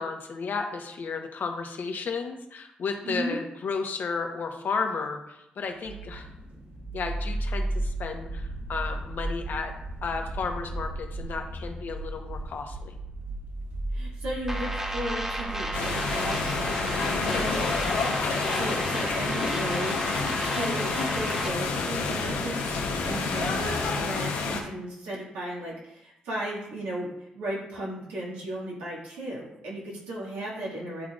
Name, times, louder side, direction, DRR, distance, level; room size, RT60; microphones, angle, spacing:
voice 1, 0.0-6.3 6.9-9.7 10.0-12.9, left 5 dB, 60° left, 4 dB, 1.0 m, -33 dB
voice 2, 3.0-3.4 13.9-31.1, right 1 dB, 90° right, -6 dB, 1.9 m, -36 dB
sound 1, 5.8-24.0, right 2 dB, 65° right, 1.6 m, -36 dB
sound 2, 14.5-21.5, equal, 15° right, 1.2 m, -33 dB
sound 3, 15.7-24.6, left 4 dB, 80° left, 0.8 m, -29 dB
10.5 x 3.6 x 2.4 m, 0.84 s
hypercardioid pair, 45°, 4 cm